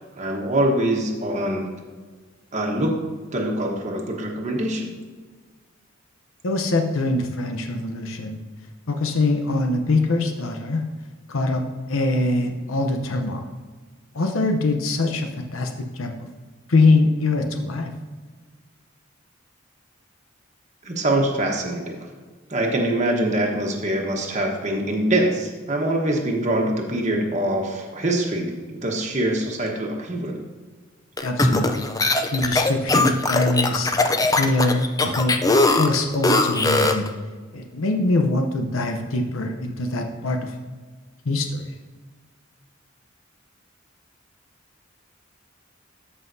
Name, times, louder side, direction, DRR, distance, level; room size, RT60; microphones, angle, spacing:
voice 1, 0.2-1.7 2.5-3.0 3.3-4.9 20.8-21.9 22.5-30.4, right 1 dB, 35° right, 0 dB, 1.2 m, -24 dB
voice 2, 6.4-8.4 8.9-10.8 11.3-13.4 14.1-15.7 16.0-16.1 16.7-17.9 31.2-33.9 34.2-35.4 35.8-37.0 37.5-40.5 41.3-41.6, left 2 dB, 90° left, 4 dB, 0.8 m, -23 dB
sound 1, 31.2-37.1, left 2 dB, 20° left, 0.5 m, -20 dB
13.5 x 5.6 x 2.7 m, 1.4 s
head